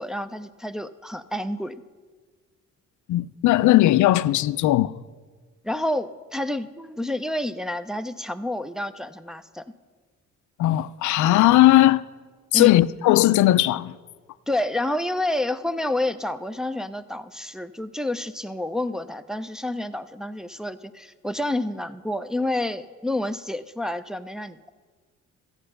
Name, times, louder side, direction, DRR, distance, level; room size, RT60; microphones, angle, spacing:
voice 1, 0.0-1.8 5.6-9.7 12.5-12.7 14.5-24.7, left 1 dB, ahead, 0.5 m, -29 dB
voice 2, 3.1-4.9 10.6-12.0 12.5-13.9, left 15 dB, 75° left, 0.5 m, -18 dB
13.5 x 8.7 x 6.6 m
cardioid pair, 90°, 30 cm